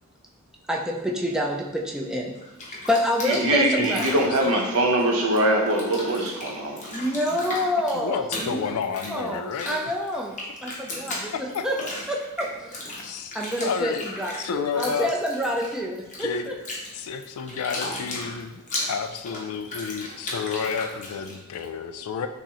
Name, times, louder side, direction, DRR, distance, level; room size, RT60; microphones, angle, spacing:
voice 1, 0.7-2.4 2.9-4.4 6.9-11.8 12.1-13.0 13.3-16.6, equal, 5° right, -1 dB, 0.3 m, -28 dB
Bathtub (filling or washing), 2.3-5.4 5.7-21.6, left 2 dB, 35° left, 0.7 m, -36 dB
voice 2, 3.3-7.0, right 1 dB, 70° right, 1 dB, 0.7 m, -23 dB
voice 3, 3.8-4.5 7.9-9.8 11.5-11.6 13.0-14.0 14.4-15.1 16.2-16.5 16.9-18.6 18.9-22.3, left 6 dB, 80° left, 8 dB, 0.3 m, -31 dB
6.0 x 2.0 x 2.8 m, 0.99 s
head